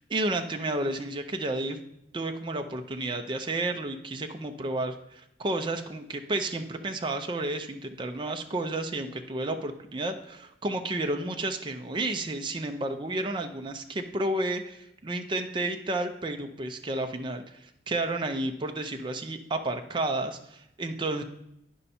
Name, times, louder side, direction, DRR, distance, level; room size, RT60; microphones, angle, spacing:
voice 1, 0.0-1.8 2.1-21.2, right 2 dB, 25° right, 5 dB, 0.5 m, -31 dB
10.0 x 5.4 x 4.2 m, 0.80 s
head